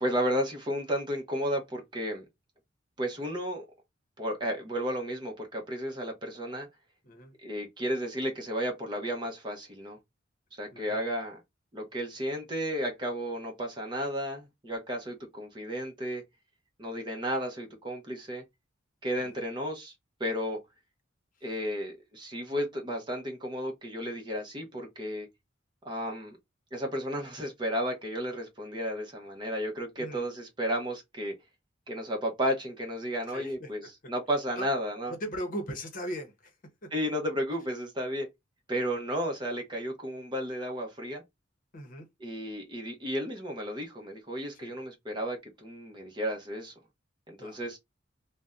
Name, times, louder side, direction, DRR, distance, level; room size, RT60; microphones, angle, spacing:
voice 1, 0.0-2.2 3.0-3.7 4.2-6.7 7.4-10.0 10.6-11.4 11.7-16.2 16.8-18.4 19.0-19.9 20.2-20.6 21.4-25.3 25.8-26.4 26.7-31.4 31.9-33.8 34.1-35.1 36.9-38.3 38.7-41.2 42.2-46.7 47.3-47.8, equal, 25° right, 0.7 m, -33 dB
voice 2, 30.0-30.3 33.3-33.9 34.6-34.7 35.1-36.5 36.8-36.9 41.7-42.1 44.5-44.7 47.4-47.6, equal, 45° left, 0.8 m, -39 dB
2.6 x 2.1 x 3.5 m
head